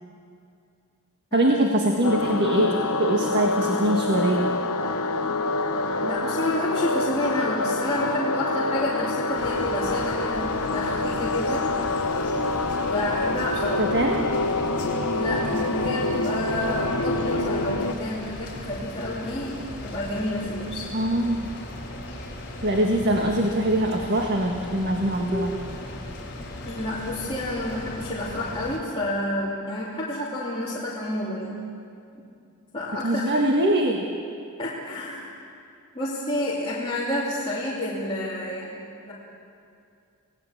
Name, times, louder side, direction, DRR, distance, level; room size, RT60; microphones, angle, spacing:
voice 1, 1.3-4.5 13.8-14.2 20.9-21.5 22.6-25.6 33.0-34.1, right 1 dB, 50° right, 1 dB, 1.7 m, -23 dB
sound 1, 2.0-17.9, left 2 dB, 75° left, 1.2 m, -26 dB
voice 2, 5.9-11.6 12.8-13.8 15.1-20.9 26.6-31.6 32.7-33.4 34.6-35.3 35.9-38.8 39.0-39.1, left 1 dB, 25° left, -8 dB, 2.9 m, -29 dB
sound 2, 9.3-28.8, left 1 dB, 50° left, 4.7 m, -38 dB
27.5 x 18.0 x 7.4 m, 2.4 s
head